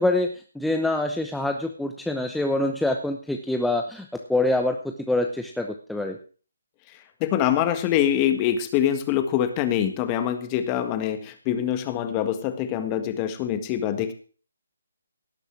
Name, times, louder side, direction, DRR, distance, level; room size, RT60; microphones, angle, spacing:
voice 1, 0.0-6.2, left 2 dB, ahead, 4 dB, 0.8 m, -25 dB
voice 2, 7.2-14.1, left 10 dB, 25° left, 9 dB, 1.7 m, -24 dB
18.0 x 6.6 x 6.1 m, 0.39 s
figure-of-eight pair, 150°, 0 cm